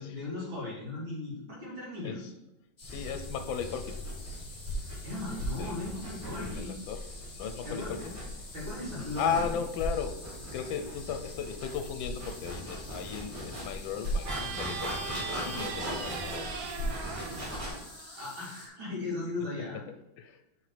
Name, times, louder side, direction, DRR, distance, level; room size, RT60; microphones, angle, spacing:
voice 1, 0.0-2.3 5.0-6.8 7.7-7.9 8.5-9.4 18.2-19.8, left 2 dB, 90° right, -6 dB, 3.7 m, -37 dB
voice 2, 2.8-4.0 5.6-5.8 6.6-7.1 7.3-8.2 9.2-16.6 20.2-20.4, left 7 dB, 80° left, 8 dB, 1.4 m, -36 dB
sound 1, 2.8-18.7, left 2 dB, 35° left, 1.3 m, -49 dB
sound 2, 2.8-17.7, equal, 45° right, 3.3 m, -38 dB
sound 3, 14.2-18.7, right 5 dB, 60° right, 1.0 m, -40 dB
8.6 x 5.7 x 3.3 m, 0.86 s
omnidirectional pair, 2.1 m